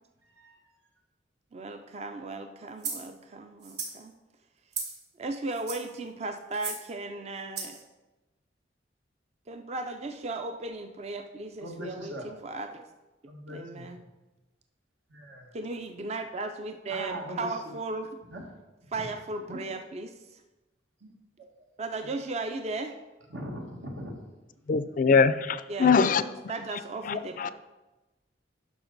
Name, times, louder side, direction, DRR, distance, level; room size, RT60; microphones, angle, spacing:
voice 1, 0.2-0.6 11.6-12.3 13.3-14.0 15.1-15.5 16.9-17.7 18.3-18.4 18.8-19.1 19.5-19.6 23.3-24.2, equal, 85° right, 1 dB, 1.7 m, -40 dB
voice 2, 1.5-4.1 5.2-7.8 9.5-12.8 13.5-14.0 15.5-18.1 18.9-20.4 21.8-23.0 25.7-27.5, right 3 dB, 35° right, 6 dB, 0.4 m, -36 dB
sound 1, 2.8-3.1 3.6-4.0 4.7-5.0 5.5-5.9 6.5-6.8 7.6-7.8, right 5 dB, 60° right, 1.7 m, -36 dB
voice 3, 24.7-26.2 27.1-27.5, left 5 dB, 45° left, 14 dB, 0.4 m, -23 dB
10.0 x 5.8 x 3.9 m, 1.1 s
head